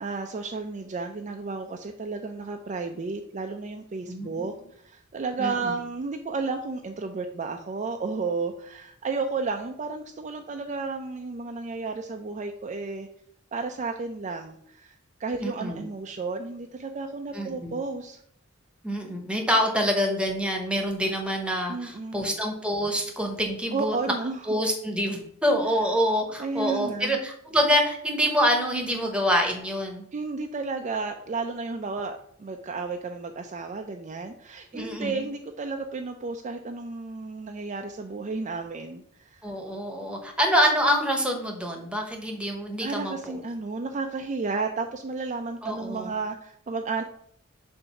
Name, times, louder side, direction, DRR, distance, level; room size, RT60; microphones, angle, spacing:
voice 1, 0.0-13.1 13.5-18.2 21.7-22.4 23.7-24.5 26.4-27.2 30.1-39.4 42.8-47.0, right 4 dB, 35° right, 4 dB, 0.4 m, -32 dB
voice 2, 4.1-4.5 5.4-5.5 15.4-15.8 17.3-17.7 18.8-24.0 24.5-30.0 34.7-35.2 39.4-43.4 45.6-46.1, equal, 5° right, 3 dB, 0.9 m, -26 dB
6.9 x 2.6 x 5.6 m, 0.68 s
head